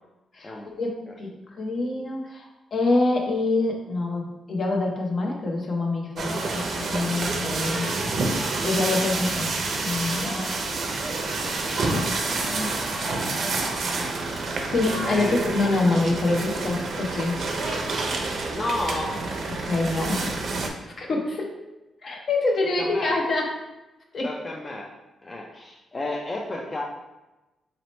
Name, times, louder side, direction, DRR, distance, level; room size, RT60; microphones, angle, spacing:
voice 1, 0.3-1.3 1.6-7.9 8.6-10.7 11.8-12.8 14.2-14.3 14.7-15.3 15.5-17.4 19.6-20.6 20.9-21.5 22.0-23.6 24.1-24.3, left 2 dB, 55° left, 1 dB, 0.8 m, -26 dB
sound 1, 6.2-20.7, right 3 dB, 60° right, 0.6 m, -28 dB
voice 2, 7.5-8.0 15.0-15.4 18.5-19.1 22.8-23.2 24.2-24.9 25.2-26.8, left 2 dB, 30° left, -2 dB, 0.5 m, -32 dB
4.1 x 2.9 x 3.1 m, 1.0 s
cardioid pair, 90°, 0 cm